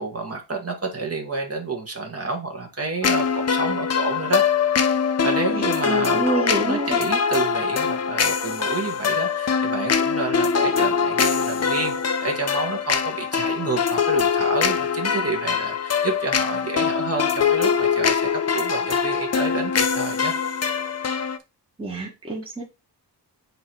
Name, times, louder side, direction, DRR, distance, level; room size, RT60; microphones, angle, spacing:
voice 1, 0.0-4.4 5.2-11.9 12.2-20.4, right 3 dB, 35° right, 1.7 m, -29 dB
sound 1, 3.0-21.4, left 6 dB, 40° left, 0.7 m, -23 dB
voice 2, 5.5-7.0 21.8-22.6, right 2 dB, 15° right, 1.4 m, -27 dB
7.6 x 3.0 x 4.6 m
wide cardioid pair, 130°, 41 cm